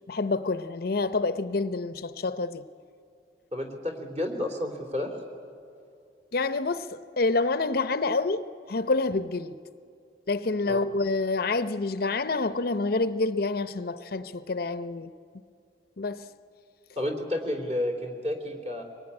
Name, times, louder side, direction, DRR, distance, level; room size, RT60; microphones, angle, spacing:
voice 1, 0.1-2.6 6.3-9.6 10.3-15.1 16.0-16.3, left 3 dB, 55° left, 0.7 m, -27 dB
voice 2, 3.5-5.1 10.7-10.8 17.0-18.8, left 1 dB, 35° right, 3.3 m, -31 dB
24.0 x 20.5 x 9.8 m
head